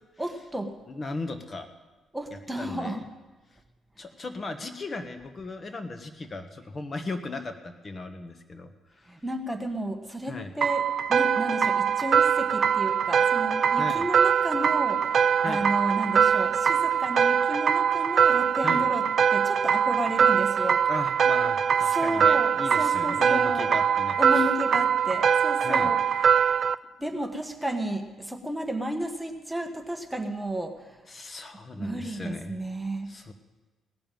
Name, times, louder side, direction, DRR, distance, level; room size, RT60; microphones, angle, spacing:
voice 1, 0.2-0.8 2.1-3.0 9.1-20.9 21.8-23.7 24.2-26.4 27.0-31.0 31.7-33.1, right 1 dB, 5° right, 5 dB, 1.4 m, -32 dB
voice 2, 0.9-1.7 2.6-3.0 4.0-8.7 9.0-9.1 10.3-10.5 13.8-14.1 15.4-15.6 18.6-18.9 20.9-24.5 25.6-25.9 31.1-32.5 33.1-33.3, left 3 dB, 35° left, 7 dB, 1.2 m, -36 dB
sound 1, 10.6-26.7, right 7 dB, 55° right, 0.4 m, -23 dB
18.0 x 7.0 x 9.2 m, 1.2 s
cardioid pair, 90°, 0 cm